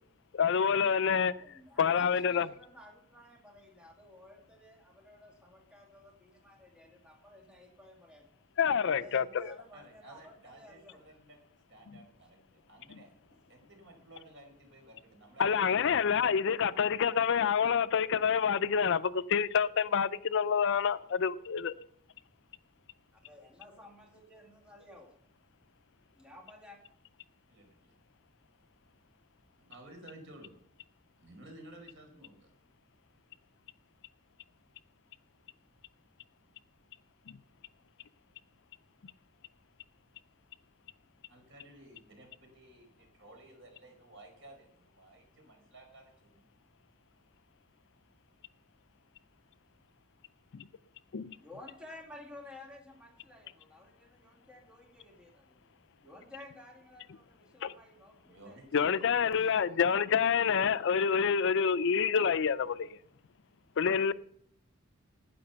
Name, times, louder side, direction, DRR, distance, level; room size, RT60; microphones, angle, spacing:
voice 1, 0.3-1.3 1.8-2.5 8.6-9.5 11.9-12.0 15.4-21.7 37.3-37.4 50.5-50.6 51.1-51.4 57.6-57.7 58.7-63.0 63.8-64.1, left 7 dB, 60° left, 0.5 m, -27 dB
voice 2, 1.4-8.3 8.8-11.0 23.2-25.1 26.1-26.8 51.4-55.7 56.0-59.1, left 1 dB, 5° right, 2.1 m, -53 dB
voice 3, 9.7-11.4 11.7-16.3 27.5-27.9 29.6-30.5 31.2-32.5 41.3-46.5 58.2-59.0 59.3-59.8, right 1 dB, 60° right, 5.0 m, -55 dB
12.0 x 9.6 x 6.8 m
head